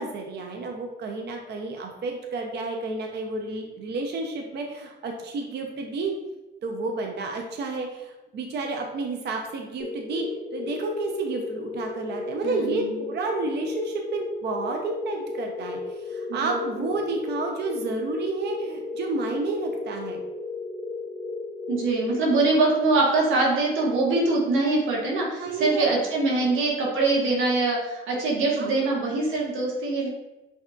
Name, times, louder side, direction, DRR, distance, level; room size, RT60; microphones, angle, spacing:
voice 1, 0.0-6.1 6.6-10.3 10.5-20.2 25.4-25.9 26.4-26.6 28.6-28.9, right 3 dB, 60° right, 2 dB, 0.6 m, -31 dB
sound 1, 9.8-22.9, left 3 dB, 30° left, 1.0 m, -35 dB
voice 2, 12.4-13.0 16.3-16.8 21.7-30.1, right 3 dB, 80° right, -3 dB, 1.2 m, -23 dB
5.7 x 2.8 x 2.3 m, 1.0 s
cardioid pair, 90°, 20 cm